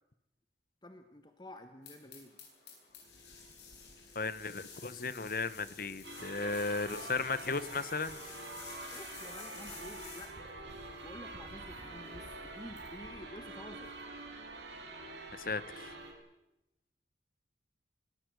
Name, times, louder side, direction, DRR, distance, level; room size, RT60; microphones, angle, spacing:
voice 1, 0.8-2.5 8.9-10.5 11.0-13.9, left 1 dB, 25° left, 7 dB, 1.3 m, -50 dB
sound 1, 1.8-10.3, left 6 dB, 75° left, 7.8 m, -51 dB
voice 2, 4.1-8.2 15.3-15.9, left 4 dB, 50° left, 15 dB, 1.0 m, -35 dB
sound 2, 6.0-16.1, right 2 dB, 90° right, 4.9 m, -46 dB
24.5 x 18.5 x 8.0 m, 0.90 s
head